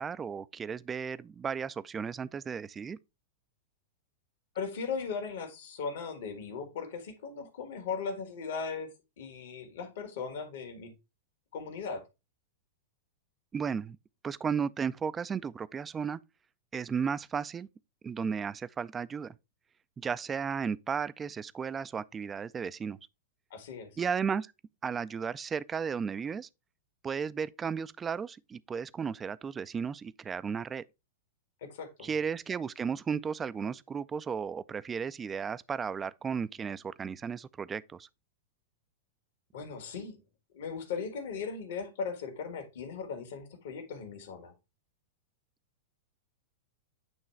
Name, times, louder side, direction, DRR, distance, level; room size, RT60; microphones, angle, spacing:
voice 1, 0.0-3.0 13.5-14.0 14.2-16.2 16.7-17.7 18.0-19.4 20.0-23.0 24.0-24.5 24.8-26.5 27.0-30.8 32.0-38.1, right 6 dB, 20° right, 0.4 m, -34 dB
voice 2, 4.6-8.9 9.2-10.9 11.5-12.0 23.5-23.9 31.6-32.1 39.5-40.2 40.5-44.5, left 5 dB, 65° left, 1.7 m, -38 dB
9.0 x 3.1 x 4.4 m
hypercardioid pair, 105°, 0 cm